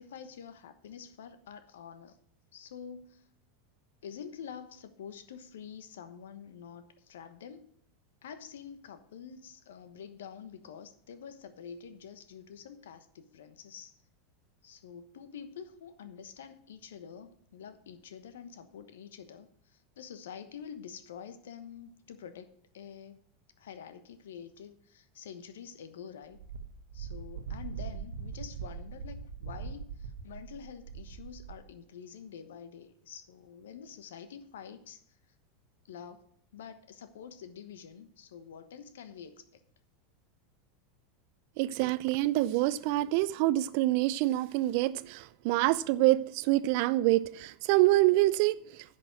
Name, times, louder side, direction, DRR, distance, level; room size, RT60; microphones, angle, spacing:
voice 1, 0.0-2.2 2.5-3.3 4.0-7.7 8.2-14.0 14.6-23.2 23.6-26.4 26.9-35.2 35.9-36.2 36.5-39.6, left 7 dB, 75° left, 1.1 m, -47 dB
Wind, 26.3-31.7, right 6 dB, 80° right, 0.9 m, -41 dB
voice 2, 41.6-48.6, right 17 dB, 60° right, 0.5 m, -26 dB
10.5 x 6.1 x 7.5 m
hypercardioid pair, 90°, 0 cm